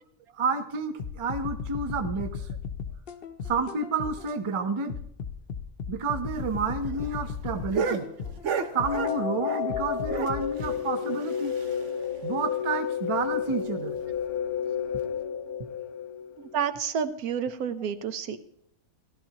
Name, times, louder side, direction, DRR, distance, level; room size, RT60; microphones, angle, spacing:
voice 1, 0.4-2.5 3.5-5.0 5.9-8.1 8.7-11.5 12.2-14.0, right 4 dB, 35° right, 8 dB, 0.5 m, -30 dB
sound 1, 1.0-4.4 4.9-9.2 9.7-10.7, left 6 dB, 55° left, 0.7 m, -36 dB
sound 2, 6.3-9.8 10.1-12.1 12.4-12.5 12.7-12.8 13.2-13.3 13.9-14.2 15.0-15.2, right 6 dB, 60° right, 1.0 m, -34 dB
sound 3, 8.7-16.7, left 8 dB, 90° left, 1.2 m, -31 dB
voice 2, 16.4-18.4, right 7 dB, 85° right, 10 dB, 1.3 m, -30 dB
15.0 x 12.0 x 2.9 m, 0.72 s
omnidirectional pair, 1.5 m